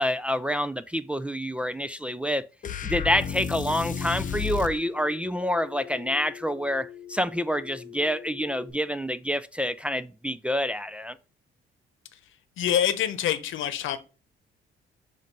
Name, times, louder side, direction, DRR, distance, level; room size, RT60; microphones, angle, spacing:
voice 1, 0.0-2.4 2.8-11.2, equal, 5° right, 0.3 m, -27 dB
sound 1, 2.6-4.8, left 7 dB, 40° left, 0.6 m, -31 dB
Telephone, 3.7-8.7, left 9 dB, 15° left, 1.2 m, -44 dB
voice 2, 12.6-14.0, left 10 dB, 80° left, 0.9 m, -26 dB
7.1 x 2.6 x 5.4 m
cardioid pair, 90°, 20 cm